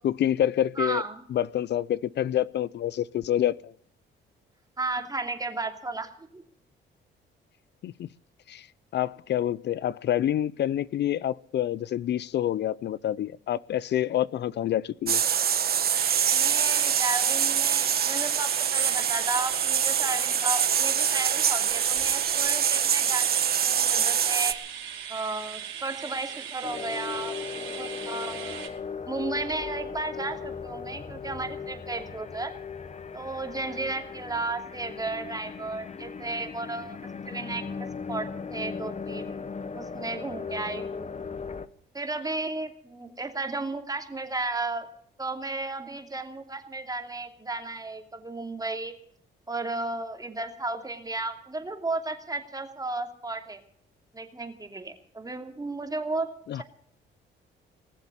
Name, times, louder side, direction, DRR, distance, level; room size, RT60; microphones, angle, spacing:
voice 1, 0.0-1.0 1.3-3.7 7.8-8.1 8.5-8.7 8.9-15.2 56.5-56.6, left 11 dB, 60° left, 0.5 m, -27 dB
voice 2, 0.8-1.2 4.8-6.4 16.3-24.6 25.1-28.6 29.1-32.5 33.1-37.0 37.3-39.3 39.7-41.1 41.9-44.9 45.2-48.9 49.5-53.6 54.1-56.3, right 2 dB, 20° right, 2.7 m, -34 dB
sound 1, 15.1-24.5, right 8 dB, 50° right, 1.3 m, -24 dB
sound 2, 15.9-28.7, right 9 dB, 75° right, 4.2 m, -39 dB
sound 3, 26.6-41.7, left 5 dB, 35° left, 1.1 m, -37 dB
20.0 x 7.1 x 9.7 m
cardioid pair, 90°, 20 cm